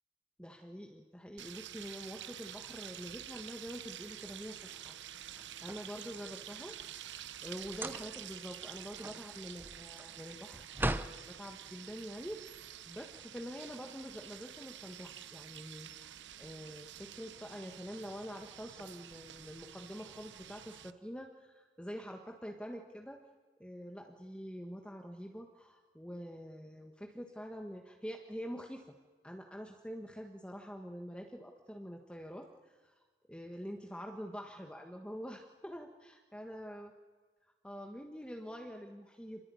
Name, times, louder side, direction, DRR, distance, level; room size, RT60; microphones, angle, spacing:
voice 1, 0.4-23.2 23.6-28.8 29.2-36.9 37.4-39.4, equal, 5° left, 3 dB, 1.4 m, -46 dB
sound 1, 1.4-20.9, right 10 dB, 90° right, 0.9 m, -49 dB
sound 2, 5.3-6.5 7.7-8.3 8.7-11.2, right 1 dB, 10° right, 0.8 m, -39 dB
26.5 x 20.5 x 9.6 m, 1.4 s
head